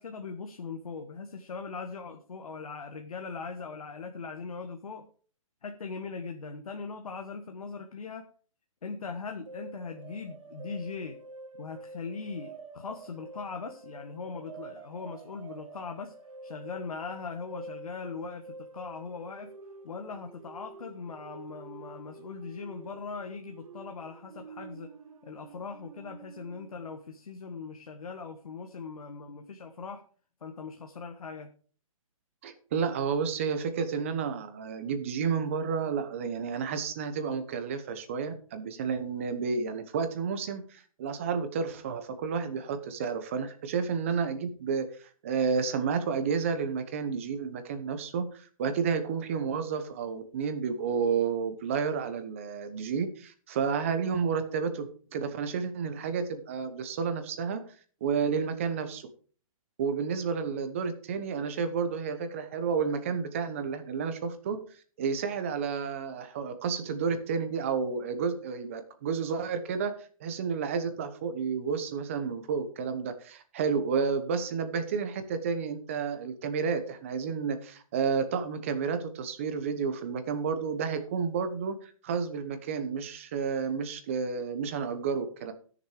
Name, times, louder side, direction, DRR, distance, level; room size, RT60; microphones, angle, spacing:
voice 1, 0.0-5.0 5.6-8.2 8.8-11.2 11.6-16.1 16.4-19.5 19.8-24.9 25.2-30.0 30.4-31.5, left 5 dB, 85° left, 5 dB, 1.5 m, -40 dB
sound 1, 9.5-26.9, right 3 dB, 65° right, 1.7 m, -48 dB
voice 2, 32.4-57.6 58.0-59.1 59.8-64.6 65.0-85.5, right 6 dB, 25° right, 9 dB, 1.0 m, -31 dB
13.0 x 6.8 x 4.8 m, 0.43 s
hypercardioid pair, 175°, 18 cm